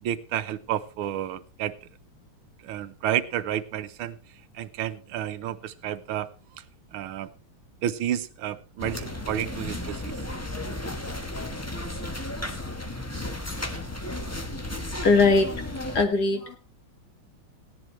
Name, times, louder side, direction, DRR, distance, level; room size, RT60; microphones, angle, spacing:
voice 1, 0.0-1.7 2.6-4.2 4.5-6.3 6.9-7.3 7.8-10.2, right 11 dB, 85° right, 12 dB, 1.6 m, -30 dB
sound 1, 8.8-16.1, left 1 dB, 15° left, 0.6 m, -34 dB
voice 2, 15.0-16.6, left 3 dB, 50° left, 6 dB, 2.0 m, -21 dB
17.0 x 10.5 x 3.2 m, 0.32 s
omnidirectional pair, 2.3 m